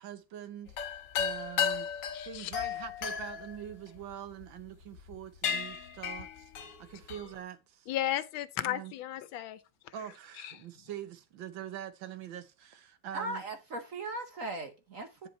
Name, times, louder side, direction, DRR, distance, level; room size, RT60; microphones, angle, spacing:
voice 1, 0.0-1.9 2.1-7.9 8.6-8.9 9.9-13.4, right 10 dB, 90° right, 1.7 m, -44 dB
sound 1, 0.7-4.4 5.0-5.1 5.4-7.4, left 7 dB, 65° left, 1.6 m, -34 dB
voice 2, 2.1-2.5 7.9-9.6 10.4-10.5, left 13 dB, 85° left, 1.4 m, -34 dB
voice 3, 13.1-15.3, right 2 dB, 50° right, 1.2 m, -38 dB
10.5 x 4.8 x 4.3 m
omnidirectional pair, 2.1 m